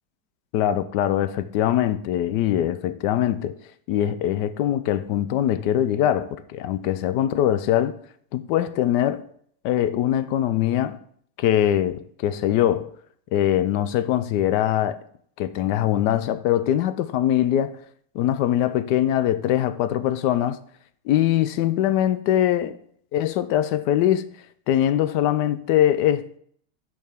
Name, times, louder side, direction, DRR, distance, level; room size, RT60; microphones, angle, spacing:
voice 1, 0.5-3.6 3.9-8.0 8.3-9.2 9.6-11.0 11.4-12.9 13.3-15.0 15.4-17.8 18.1-20.6 21.1-22.8 23.1-24.2 24.7-26.4, left 11 dB, 80° left, 1.2 m, -22 dB
10.5 x 5.4 x 3.5 m
omnidirectional pair, 1.8 m